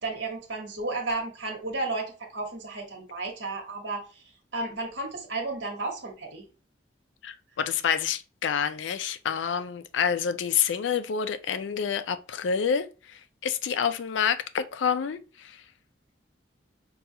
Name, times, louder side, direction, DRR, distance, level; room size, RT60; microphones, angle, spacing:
voice 1, 0.0-4.2 4.5-6.4, right 3 dB, 75° right, 1.1 m, -33 dB
voice 2, 7.2-12.9 13.4-15.2, left 7 dB, 80° left, 0.4 m, -27 dB
5.3 x 2.3 x 2.7 m
head